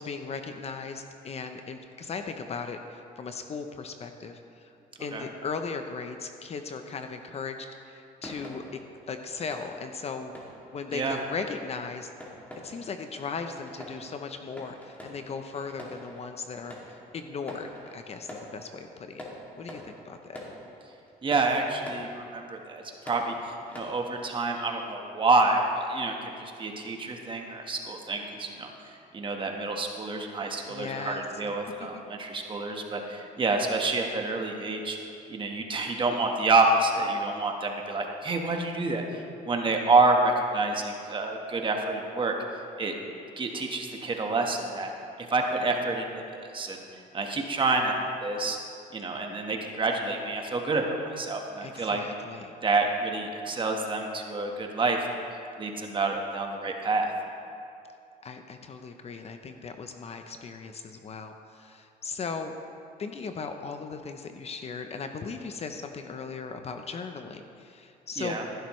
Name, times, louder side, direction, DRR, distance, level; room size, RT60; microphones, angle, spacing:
voice 1, 0.0-4.7 5.0-8.6 9.1-10.3 10.7-12.1 12.6-19.3 19.6-20.4 30.7-31.2 31.8-32.0 51.6-52.5 58.2-62.5 63.0-68.4, left 5 dB, 40° left, 6 dB, 0.7 m, -37 dB
sound 1, 8.2-24.2, equal, 10° left, 2.5 m, -47 dB
voice 2, 21.2-23.3 23.7-28.7 29.1-35.0 35.3-42.3 42.8-42.9 43.4-44.9 45.2-46.8 47.1-47.9 48.2-48.6 48.9-52.0 52.6-55.0 55.6-57.1 68.2-68.4, right 3 dB, 30° right, 2 dB, 1.4 m, -28 dB
15.5 x 11.5 x 3.2 m, 2.6 s
cardioid pair, 110°, 17 cm